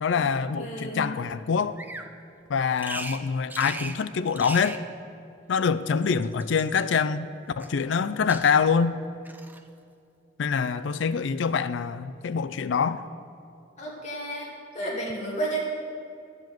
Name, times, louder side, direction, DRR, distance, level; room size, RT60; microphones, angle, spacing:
voice 1, 0.0-1.8 2.5-4.8 5.5-7.3 7.6-9.0 10.4-13.0, left 6 dB, 75° left, 0.4 m, -25 dB
voice 2, 0.6-1.1 13.8-15.6, right 2 dB, 35° left, 2.3 m, -32 dB
Bird vocalization bird call bird song, 1.8-2.1 2.8-3.2 3.5-4.0 4.3-4.8 5.8-6.8 7.6-8.0 8.3-8.8 9.3-9.6, right 2 dB, 10° right, 0.4 m, -39 dB
12.0 x 5.3 x 7.6 m
head